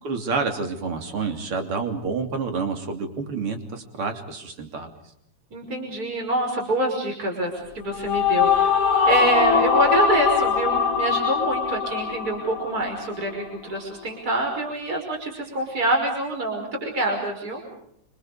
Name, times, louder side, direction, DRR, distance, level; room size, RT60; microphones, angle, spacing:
voice 1, 0.0-4.9, right 4 dB, 45° right, 5 dB, 3.9 m, -28 dB
voice 2, 5.5-8.8 9.1-17.6, right 1 dB, 30° right, 2 dB, 5.9 m, -26 dB
sound 1, 7.7-13.2, left 6 dB, 60° left, 2.6 m, -22 dB
28.5 x 27.0 x 5.1 m, 0.73 s
omnidirectional pair, 3.3 m